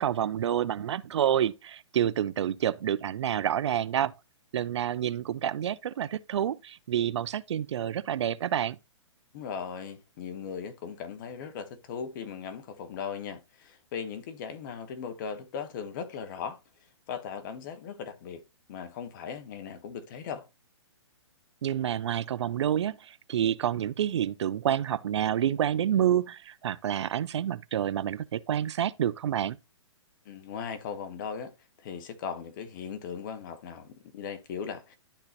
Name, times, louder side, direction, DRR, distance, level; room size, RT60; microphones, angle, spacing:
voice 1, 0.0-4.1 4.5-8.8 21.6-29.6, right 10 dB, 65° right, 0.5 m, -28 dB
voice 2, 9.3-16.6 17.1-18.4 18.7-20.5 30.2-31.5 31.8-35.0, left 7 dB, 40° left, 1.1 m, -38 dB
12.0 x 3.9 x 2.9 m
hypercardioid pair, 135°, 16 cm